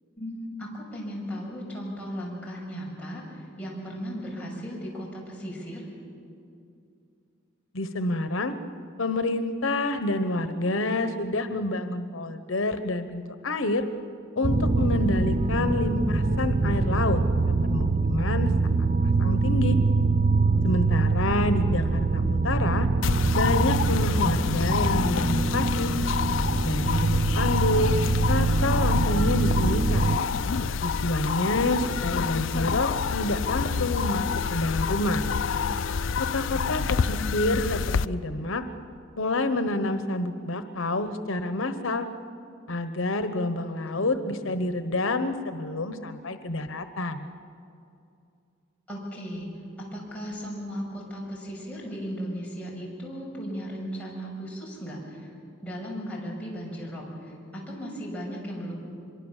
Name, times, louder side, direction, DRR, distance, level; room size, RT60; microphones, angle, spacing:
voice 1, 0.2-5.9 15.5-15.7 36.5-36.9 43.8-44.0 44.3-44.5 48.9-49.5 49.8-55.3 55.6-58.7, equal, 5° left, -5 dB, 6.5 m, -36 dB
voice 2, 7.7-8.5 9.0-13.8 14.4-17.2 17.5-18.5 18.8-18.9 19.2-19.8 20.6-22.9 23.3-25.9 26.6-28.0 28.3-30.1 30.8-35.2 36.2-38.6 39.2-42.1 42.7-47.3, left 2 dB, 85° left, 10 dB, 1.1 m, -28 dB
sound 1, 14.4-30.2, right 3 dB, 35° right, 0.7 m, -24 dB
sound 2, 23.0-38.1, left 6 dB, 70° left, 0.5 m, -28 dB
24.5 x 23.5 x 7.4 m, 2.5 s
head